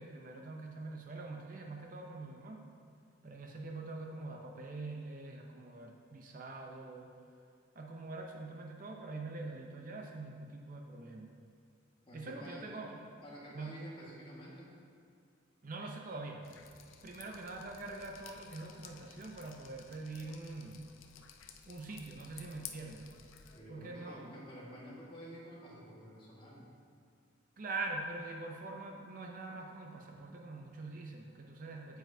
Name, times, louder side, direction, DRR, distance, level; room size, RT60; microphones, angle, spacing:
voice 1, 0.0-2.6 3.2-7.1 7.8-11.3 12.1-13.1 13.5-13.8 15.6-16.4 17.0-20.8 21.7-23.1 23.7-24.3 27.6-32.0, right 3 dB, 45° right, 1 dB, 0.6 m, -44 dB
voice 2, 12.0-12.7 13.2-14.7 23.5-26.7, equal, 25° left, -5 dB, 1.6 m, -50 dB
Drip, 16.4-23.6, left 7 dB, 85° left, 0.5 m, -54 dB
9.0 x 8.0 x 2.7 m, 2.3 s
head